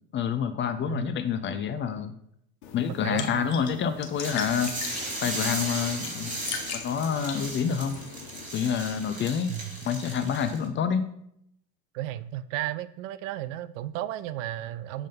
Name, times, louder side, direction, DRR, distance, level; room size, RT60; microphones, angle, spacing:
voice 1, 0.1-2.1 2.7-4.7 5.2-6.4 6.7-8.0 8.5-9.6 9.8-11.1, left 7 dB, 25° left, 9 dB, 0.5 m, -28 dB
sound 1, 2.6-8.5, left 6 dB, 65° left, 1.4 m, -39 dB
voice 2, 3.0-3.6 9.5-9.7 11.9-15.1, right 13 dB, 55° right, 15 dB, 0.5 m, -34 dB
sound 2, 4.2-10.7, right 2 dB, 15° right, 2.9 m, -36 dB
7.3 x 3.6 x 5.5 m, 0.73 s
hypercardioid pair, 85°, 50 cm